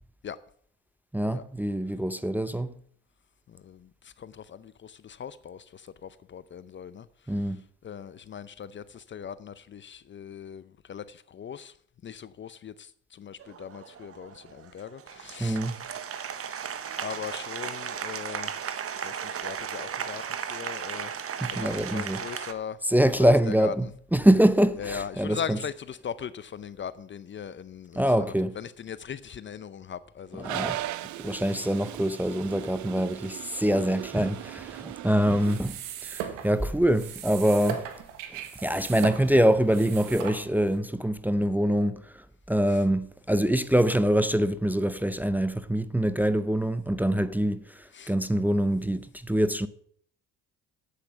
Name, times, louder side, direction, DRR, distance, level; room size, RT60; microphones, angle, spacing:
voice 1, 1.1-2.7 7.3-7.6 15.4-15.7 21.4-22.2 22.9-23.9 24.1-25.4 28.0-28.5 30.5-30.8 31.2-37.8 38.3-49.7, equal, 5° right, 0.6 m, -24 dB
voice 2, 3.5-11.8 12.0-15.6 17.0-18.6 18.9-21.1 21.5-23.9 24.8-30.5 37.6-37.8 42.7-42.8 47.9-48.1, left 8 dB, 35° left, 0.6 m, -40 dB
Applause, 13.4-22.5, right 8 dB, 45° right, 1.1 m, -36 dB
Toilet flush, 30.4-35.6, right 14 dB, 60° right, 0.7 m, -38 dB
sound 1, 35.3-40.8, right 10 dB, 80° right, 1.4 m, -38 dB
8.4 x 8.2 x 6.8 m
supercardioid pair, 70°, 32 cm